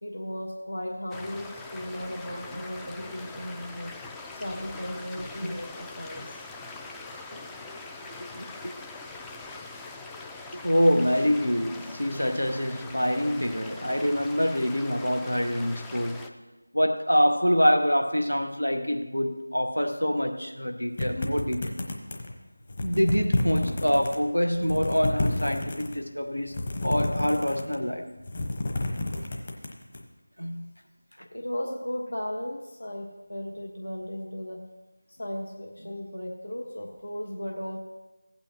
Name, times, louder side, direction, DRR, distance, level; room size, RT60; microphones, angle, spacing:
voice 1, 0.0-3.9 4.3-6.4 31.3-34.6 35.1-37.8, left 1 dB, 70° left, 1.3 m, -36 dB
sound 1, 1.1-16.3, left 3 dB, 5° left, 0.3 m, -42 dB
voice 2, 5.2-5.6 7.3-7.4 8.3-8.8 10.5-16.2 16.7-21.7 22.8-26.5 26.8-28.1 30.4-30.7, equal, 90° left, 1.1 m, -26 dB
sound 2, 21.0-22.3 22.7-24.2 24.5-26.0 26.5-27.9 28.2-30.0, left 2 dB, 35° left, 1.2 m, -30 dB
15.5 x 8.8 x 2.9 m
figure-of-eight pair, 165°, 0 cm